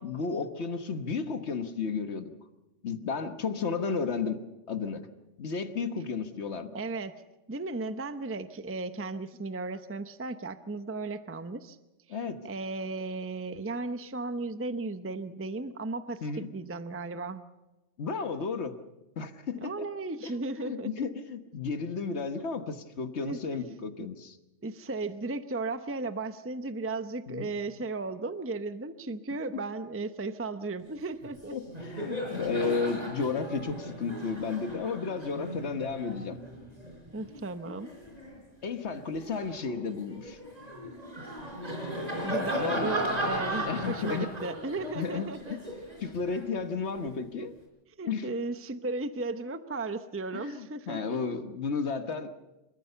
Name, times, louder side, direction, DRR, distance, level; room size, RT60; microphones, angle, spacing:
voice 1, 0.0-2.3 2.8-5.1 5.4-6.8 12.1-12.4 16.2-16.5 18.0-18.8 19.2-19.9 20.2-20.3 20.6-24.4 27.3-27.5 31.5-36.4 38.6-40.4 42.5-42.9 43.7-44.3 44.9-45.3 46.0-47.5 48.1-48.3 50.3-52.3, left 5 dB, 65° left, 9 dB, 1.5 m, -33 dB
voice 2, 6.7-7.1 7.5-11.8 12.1-12.2 12.4-17.4 19.6-20.9 22.4-22.5 23.2-23.6 24.0-24.1 24.6-31.6 32.6-32.8 37.1-37.9 42.2-45.6 47.4-47.5 48.0-51.2 52.2-52.3, right 3 dB, 15° right, 11 dB, 0.6 m, -35 dB
Laughter, 31.2-31.4 31.7-38.4 38.9-47.1, equal, 35° right, 4.7 m, -36 dB
27.0 x 14.0 x 6.8 m, 1.0 s
omnidirectional pair, 1.2 m